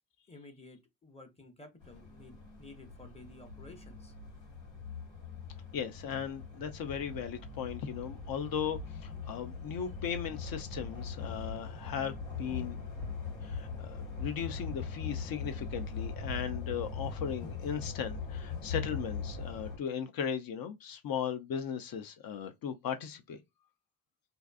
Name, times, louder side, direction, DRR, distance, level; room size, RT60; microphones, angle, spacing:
voice 1, 0.3-4.1, left 2 dB, 15° left, 0.8 m, -53 dB
sound 1, 1.8-19.8, left 5 dB, 80° left, 1.6 m, -41 dB
voice 2, 5.7-12.8 13.4-23.4, left 8 dB, 45° left, 0.5 m, -37 dB
2.5 x 2.3 x 2.3 m
hypercardioid pair, 55°, 48 cm